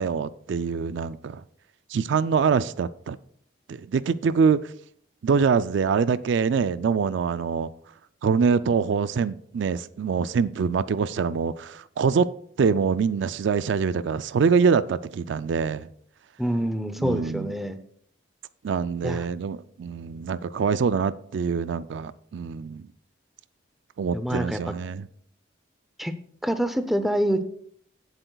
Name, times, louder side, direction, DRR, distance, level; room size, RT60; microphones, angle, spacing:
voice 1, 0.0-1.4 1.9-3.2 3.7-4.7 5.2-7.7 8.2-12.3 12.6-15.9 17.0-17.5 18.6-22.9 24.0-25.1, right 5 dB, 65° right, 0.3 m, -24 dB
voice 2, 16.4-17.8 19.0-19.3 24.1-24.7 26.0-26.1 26.4-27.4, equal, ahead, 0.5 m, -26 dB
17.0 x 7.7 x 2.3 m
head